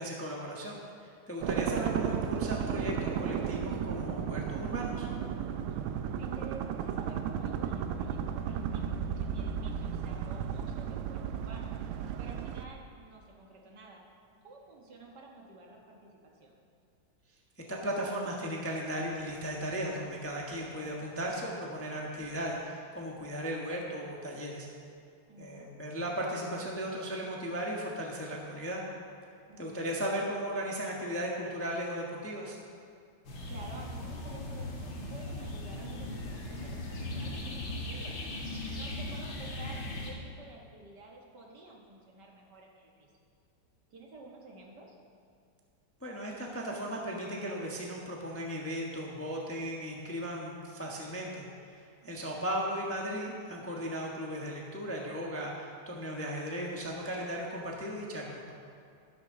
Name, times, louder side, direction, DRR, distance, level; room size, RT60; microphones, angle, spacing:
voice 1, 0.0-5.1 17.7-24.7 25.4-28.8 29.6-32.6 46.0-58.5, equal, 10° left, -2 dB, 0.9 m, -36 dB
sound 1, 1.4-12.7, right 7 dB, 80° right, 1.4 m, -34 dB
voice 2, 6.1-11.8 12.2-14.0 14.4-16.6 25.2-25.7 29.5-29.8 33.5-38.2 38.7-43.1 43.9-44.9 52.0-52.5, right 2 dB, 55° right, -1 dB, 1.9 m, -51 dB
sound 2, 33.2-40.1, left 1 dB, 65° left, 2.4 m, -38 dB
12.5 x 12.0 x 3.9 m, 2.3 s
omnidirectional pair, 2.3 m